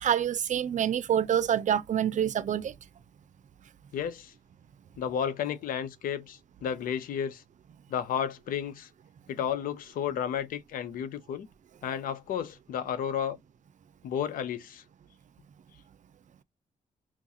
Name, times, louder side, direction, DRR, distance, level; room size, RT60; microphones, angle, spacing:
voice 1, 0.0-2.7, right 9 dB, 60° right, 0.5 m, -26 dB
voice 2, 3.9-4.3 5.0-7.4 7.9-8.9 9.3-11.5 11.8-13.4 14.0-14.8, left 8 dB, 85° left, 0.5 m, -32 dB
5.8 x 2.4 x 2.7 m
cardioid pair, 65°, 14 cm